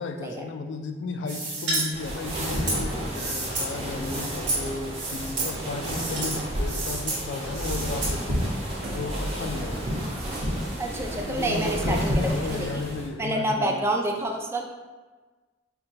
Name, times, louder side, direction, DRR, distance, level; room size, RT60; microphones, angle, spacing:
voice 1, 0.0-8.6 8.9-9.9 11.0-13.8, left 3 dB, 70° left, 6 dB, 0.3 m, -34 dB
sound 1, 1.3-1.9 2.2-3.7 4.0-4.6 4.9-5.5 5.8-6.4 6.6-7.2 7.5-8.1, right 2 dB, 75° right, 1.4 m, -30 dB
sound 2, 1.9-13.1, equal, 30° right, 0.9 m, -31 dB
sound 3, 7.4-12.7, equal, 60° right, 0.9 m, -36 dB
voice 2, 10.8-12.8 13.2-14.7, right 1 dB, 15° right, 2 dB, 0.3 m, -28 dB
5.5 x 2.2 x 2.7 m, 1.3 s
head